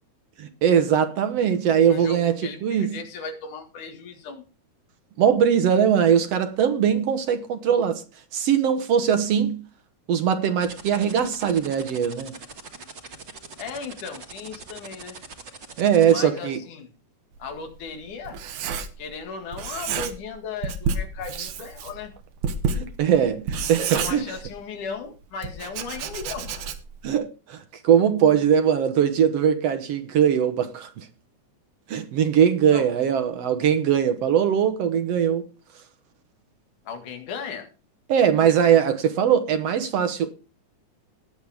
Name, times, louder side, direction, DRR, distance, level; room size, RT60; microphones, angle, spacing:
voice 1, 0.4-2.4 2.6-2.9 5.2-8.0 8.3-9.6 10.1-12.3 15.8-16.6 21.4-21.5 22.7-24.2 27.0-31.1 31.9-35.5 38.1-40.3, right 8 dB, 65° right, 1.9 m, -21 dB
voice 2, 1.9-4.4 13.6-15.2 16.1-16.9 17.4-18.4 19.0-22.1 23.9-26.5 32.7-32.9 36.9-37.7, left 5 dB, 85° left, 3.4 m, -36 dB
sound 1, 10.6-16.1, right 4 dB, 45° right, 2.0 m, -41 dB
Writing, 17.4-19.3 19.5-20.4 20.6-24.8 25.4-27.1, right 5 dB, 80° right, 2.7 m, -30 dB
19.5 x 7.9 x 3.5 m
omnidirectional pair, 3.5 m